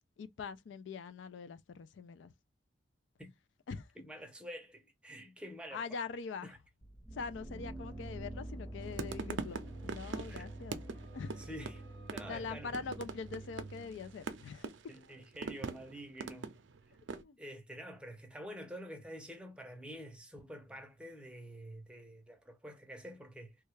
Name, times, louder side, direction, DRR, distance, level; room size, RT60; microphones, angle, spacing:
voice 1, 0.2-2.3 3.7-3.9 5.7-6.5 7.1-10.8 11.1-11.5 12.3-14.7 17.1-17.4, left 5 dB, 80° left, 0.4 m, -43 dB
voice 2, 4.0-5.8 6.4-6.6 10.3-10.5 11.4-11.8 12.1-12.9 14.9-16.6 17.4-23.6, equal, 5° right, 0.6 m, -48 dB
sound 1, 6.8-14.7, right 1 dB, 20° left, 0.9 m, -47 dB
sound 2, 8.8-17.2, right 4 dB, 80° right, 0.5 m, -43 dB
3.2 x 2.3 x 3.2 m
head